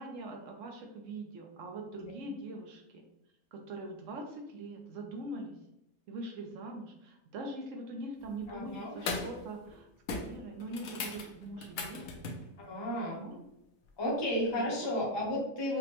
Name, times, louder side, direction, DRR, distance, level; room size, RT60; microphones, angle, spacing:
voice 1, 0.0-3.0 3.5-5.6 6.1-12.3 13.0-13.4 14.8-14.9, right 2 dB, 65° right, 2 dB, 0.8 m, -42 dB
sound 1, 8.2-8.5 8.9-9.4 9.7-9.8 10.1-12.5 14.5-14.6, left 4 dB, 70° left, 1.0 m, -39 dB
voice 2, 8.5-8.9 12.6-13.2 14.0-15.8, left 1 dB, 25° left, -3 dB, 0.6 m, -33 dB
4.9 x 2.1 x 2.9 m, 0.84 s
omnidirectional pair, 1.7 m